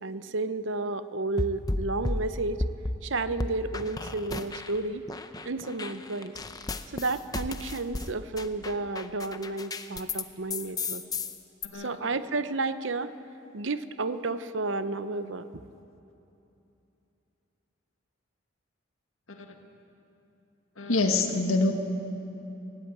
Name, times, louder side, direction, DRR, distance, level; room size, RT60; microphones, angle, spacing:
voice 1, 0.0-2.6 3.0-5.1 5.4-6.3 6.9-11.0 11.7-13.1 13.5-15.5, right 3 dB, 65° right, 12 dB, 0.8 m, -31 dB
sound 1, 1.4-3.0 3.4-4.8 5.1-10.2 10.5-11.7, left 2 dB, 20° left, 0.6 m, -33 dB
voice 2, 20.8-21.7, left 3 dB, 90° left, 4 dB, 1.9 m, -26 dB
18.5 x 18.5 x 7.9 m, 2.9 s
head